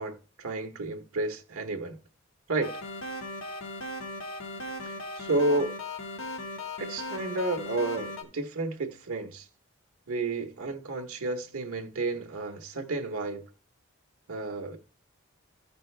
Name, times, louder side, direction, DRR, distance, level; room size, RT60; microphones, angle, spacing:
voice 1, 0.0-2.0 2.5-2.8 4.8-5.7 6.8-9.5 10.1-13.5 14.3-14.8, right 2 dB, 85° right, 1.1 m, -31 dB
sound 1, 2.6-8.2, left 2 dB, 75° left, 1.6 m, -38 dB
14.0 x 5.2 x 3.3 m
head